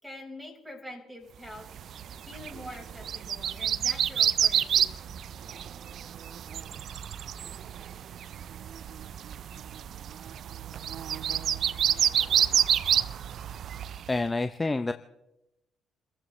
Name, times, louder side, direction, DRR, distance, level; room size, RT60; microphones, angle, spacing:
voice 1, 0.0-1.7 2.3-5.2, left 1 dB, 5° right, 1 dB, 5.4 m, -45 dB
sound 1, 1.7-14.1, right 9 dB, 60° right, 0.5 m, -29 dB
voice 2, 14.1-14.9, left 2 dB, 20° left, 9 dB, 0.8 m, -28 dB
29.0 x 15.0 x 3.3 m, 0.89 s
hypercardioid pair, 55°, 0 cm